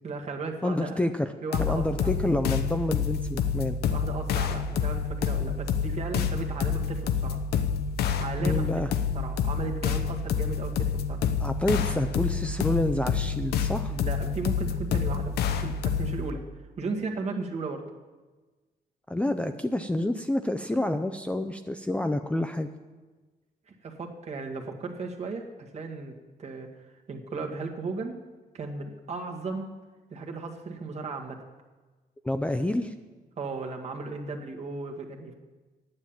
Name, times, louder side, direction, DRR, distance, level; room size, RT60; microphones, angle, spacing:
voice 1, 0.0-1.0 1.4-2.1 3.9-7.4 8.2-8.7 9.1-11.2 13.9-16.4 16.8-17.8 23.7-26.1 26.4-28.2 28.5-29.7 30.1-31.4 33.4-35.3, right 3 dB, 45° right, 2 dB, 1.7 m, -35 dB
voice 2, 0.6-1.3 1.6-3.8 8.4-8.9 11.4-13.9 19.1-22.7 32.2-32.9, left 1 dB, 10° left, 7 dB, 0.5 m, -28 dB
sound 1, 1.5-16.3, left 7 dB, 85° left, 0.8 m, -28 dB
9.7 x 7.5 x 8.7 m, 1.3 s
cardioid pair, 110°, 16 cm